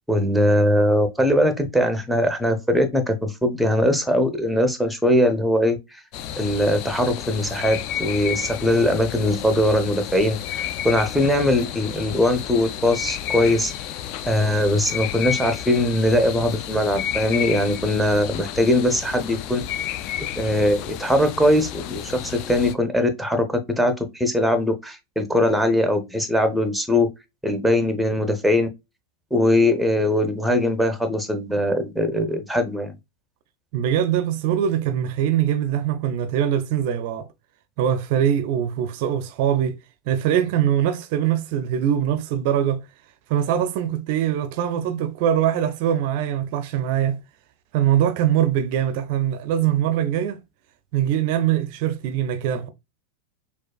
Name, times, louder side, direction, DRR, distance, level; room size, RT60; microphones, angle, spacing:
voice 1, 0.1-6.0 6.4-13.7 14.2-19.6 20.4-27.1 27.4-28.7 29.3-32.9, left 1 dB, ahead, 0.7 m, -21 dB
sound 1, 6.1-22.8, left 11 dB, 40° left, 0.3 m, -31 dB
voice 2, 33.7-37.3 37.8-39.8 40.1-42.8 43.3-47.2 47.7-50.4 50.9-52.7, right 10 dB, 45° right, 0.4 m, -22 dB
6.1 x 2.4 x 2.3 m
figure-of-eight pair, 90°, 0 cm